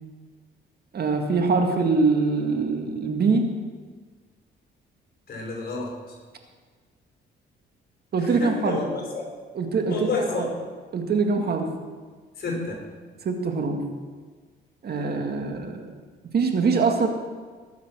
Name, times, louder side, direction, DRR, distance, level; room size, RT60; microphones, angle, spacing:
voice 1, 0.9-3.5 8.1-8.8 9.6-10.5 10.9-11.7 13.2-13.8 14.8-15.9 16.3-17.1, right 4 dB, 55° right, 4 dB, 1.9 m, -23 dB
voice 2, 5.3-6.2 8.1-9.3 9.9-10.5 12.4-12.8, left 3 dB, 50° left, -1 dB, 5.2 m, -30 dB
20.0 x 7.4 x 6.1 m, 1.5 s
cardioid pair, 90°, 20 cm